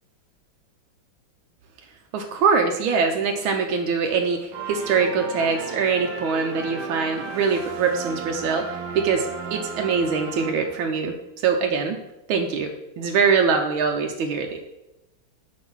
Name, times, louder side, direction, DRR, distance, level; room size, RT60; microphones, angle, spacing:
voice 1, 2.1-8.6 8.9-9.3 9.5-11.1 11.4-12.0 12.3-12.7 13.0-14.6, right 5 dB, 90° right, 3 dB, 1.5 m, -23 dB
sound 1, 4.5-11.1, right 5 dB, 65° right, 1.2 m, -34 dB
8.9 x 3.2 x 6.0 m, 0.89 s
omnidirectional pair, 2.2 m